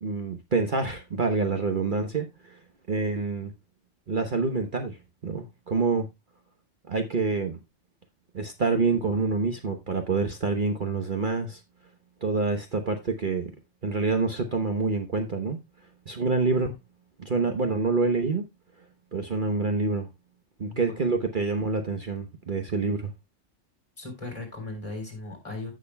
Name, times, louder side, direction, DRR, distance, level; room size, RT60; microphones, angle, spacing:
voice 1, 0.0-2.3 2.9-3.5 4.1-5.0 5.2-6.1 6.9-7.6 8.3-11.6 12.2-13.5 13.8-15.6 16.1-16.8 17.2-18.4 19.1-20.1 20.6-23.1, right 4 dB, 45° right, 1.1 m, -27 dB
voice 2, 20.7-21.0 24.0-25.7, left 2 dB, 25° left, 3.9 m, -37 dB
15.5 x 6.3 x 2.2 m
omnidirectional pair, 1.3 m